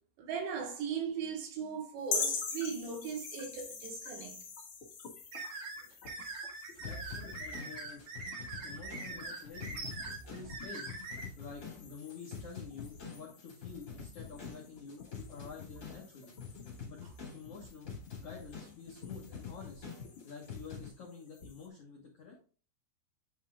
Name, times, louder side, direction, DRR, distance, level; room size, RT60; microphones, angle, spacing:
voice 1, 0.2-4.4, right 6 dB, 75° right, 3.6 m, -38 dB
sound 1, 2.0-21.7, left 5 dB, 60° left, 1.5 m, -45 dB
sound 2, 5.3-11.2, right 3 dB, 50° right, 1.9 m, -43 dB
voice 2, 6.8-8.0 8.6-9.8 10.3-10.9 11.4-16.4 16.9-17.0 17.3-19.9 20.2-22.4, left 5 dB, 90° left, 1.3 m, -49 dB
sound 3, 6.8-20.9, left 5 dB, 30° left, 2.5 m, -47 dB
9.2 x 5.7 x 2.4 m
omnidirectional pair, 5.2 m